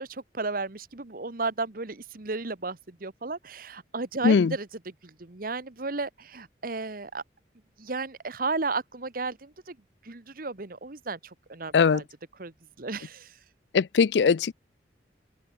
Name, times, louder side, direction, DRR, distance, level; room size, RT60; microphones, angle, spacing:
voice 1, 0.0-7.2 7.8-9.8 10.0-12.0 12.4-13.4, right 3 dB, 55° right, 1.3 m, -34 dB
voice 2, 13.7-14.5, left 5 dB, 75° left, 0.4 m, -20 dB
open air
head